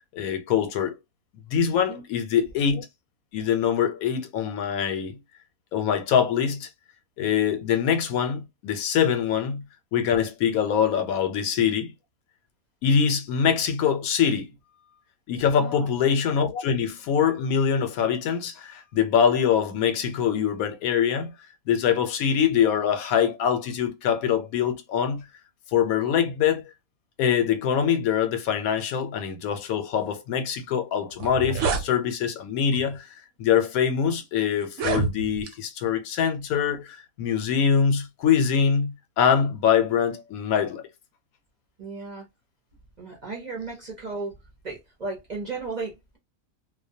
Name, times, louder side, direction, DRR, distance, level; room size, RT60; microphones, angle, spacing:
voice 1, 0.1-0.9 1.5-2.9 3.3-5.2 5.7-6.7 7.2-9.6 9.9-11.9 12.8-14.5 15.3-21.3 21.7-25.3 25.7-26.6 27.2-33.1 33.4-40.8, left 7 dB, 85° left, 1.1 m, -24 dB
voice 2, 15.6-15.9 41.8-42.2 43.0-44.3 44.6-46.2, right 3 dB, 40° right, 0.6 m, -35 dB
sound 1, 30.7-30.8 31.1-31.9 32.7-33.0 33.7-33.8 34.6-35.5, right 4 dB, 90° right, 1.0 m, -27 dB
2.4 x 2.2 x 2.6 m
omnidirectional pair, 1.5 m